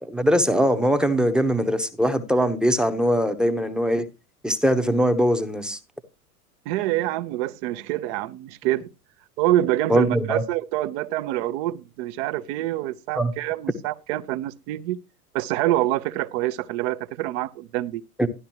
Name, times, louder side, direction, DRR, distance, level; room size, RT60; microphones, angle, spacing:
voice 1, 0.0-4.0 4.4-5.8 9.9-10.4 13.2-13.3 18.2-18.3, equal, ahead, 0.9 m, -21 dB
voice 2, 6.7-8.9 9.4-15.0 15.3-18.0, right 14 dB, 45° right, 0.8 m, -26 dB
12.5 x 11.0 x 3.0 m
hypercardioid pair, 100°, 47 cm